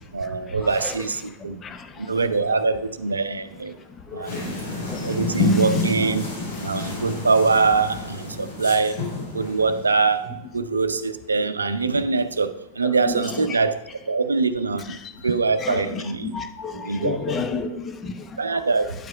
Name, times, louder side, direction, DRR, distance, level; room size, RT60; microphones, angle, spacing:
voice 1, 0.1-1.6 2.0-3.8 4.1-4.6 5.0-6.3 6.6-9.0 9.3-10.3 10.5-13.8 14.1-16.3 16.7-17.6 18.4-18.9, right 4 dB, 75° right, 11 dB, 0.5 m, -23 dB
voice 2, 4.1-4.6 4.8-5.1 5.5-5.6 10.7-10.8 13.1-13.2 15.6-16.0 16.3-18.3, left 5 dB, 20° left, 8 dB, 0.7 m, -31 dB
sound 1, 4.3-10.4, left 2 dB, 60° left, 3.4 m, -28 dB
9.2 x 4.8 x 5.5 m, 0.93 s
figure-of-eight pair, 90°, 0 cm